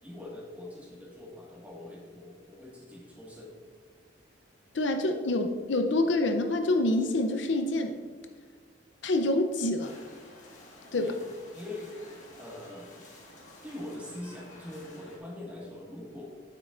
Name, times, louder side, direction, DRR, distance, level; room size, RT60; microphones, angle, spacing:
voice 1, 0.0-3.6 10.9-11.2 11.5-11.9 12.4-12.9 13.6-16.2, left 1 dB, 10° right, -4 dB, 1.6 m, -43 dB
voice 2, 4.7-8.0 9.0-10.0 10.9-11.1, left 2 dB, 65° left, 6 dB, 0.6 m, -27 dB
sound 1, 9.8-15.2, left 2 dB, 40° left, 1.6 m, -51 dB
9.2 x 7.4 x 2.5 m, 1.5 s
head